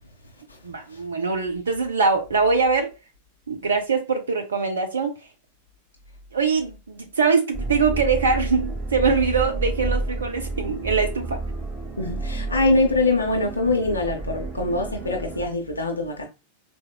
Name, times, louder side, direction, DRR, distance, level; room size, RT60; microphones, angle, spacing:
voice 1, 0.6-2.9 3.5-5.1 6.3-11.4, right 4 dB, 70° right, 0.5 m, -23 dB
sound 1, 7.5-15.5, right 2 dB, 10° right, 1.3 m, -30 dB
voice 2, 12.0-16.3, left 2 dB, 80° left, 0.5 m, -23 dB
4.0 x 2.0 x 2.2 m
figure-of-eight pair, 90°, 0 cm